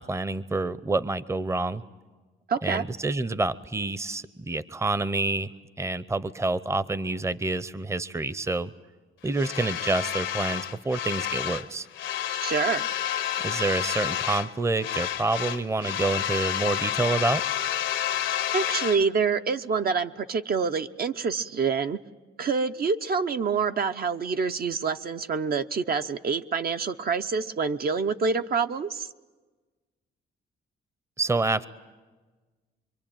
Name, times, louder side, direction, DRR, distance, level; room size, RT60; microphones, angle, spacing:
voice 1, 0.0-1.8 2.6-5.5 5.8-8.7 9.2-11.9 13.4-17.4 31.2-31.7, right 3 dB, 15° right, 16 dB, 0.7 m, -28 dB
voice 2, 2.5-2.8 12.4-12.9 18.5-22.0 22.4-29.1, right 5 dB, 50° right, 7 dB, 0.7 m, -26 dB
sound 1, 9.3-11.7 11.9-14.5 14.8-19.0, left 11 dB, 75° left, 0.9 m, -30 dB
26.0 x 23.0 x 9.0 m, 1.3 s
cardioid pair, 90°, 20 cm